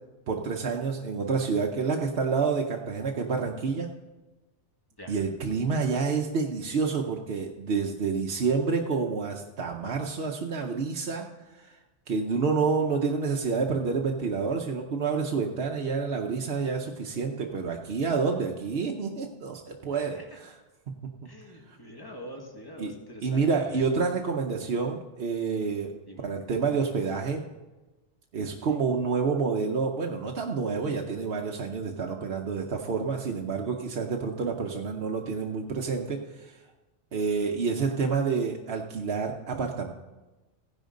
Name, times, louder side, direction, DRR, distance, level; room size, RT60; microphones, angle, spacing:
voice 1, 0.3-3.9 5.1-11.3 11.5-11.8 12.1-20.5 20.9-21.1 21.7-21.8 22.8-22.9 23.2-27.4 28.3-36.6 37.1-39.9, right 5 dB, 60° right, 1 dB, 1.0 m, -28 dB
voice 2, 20.0-20.4 21.2-23.8 26.1-26.2 28.7-28.8, equal, 20° left, 1 dB, 1.7 m, -44 dB
16.0 x 10.5 x 3.8 m, 1.2 s
omnidirectional pair, 1.2 m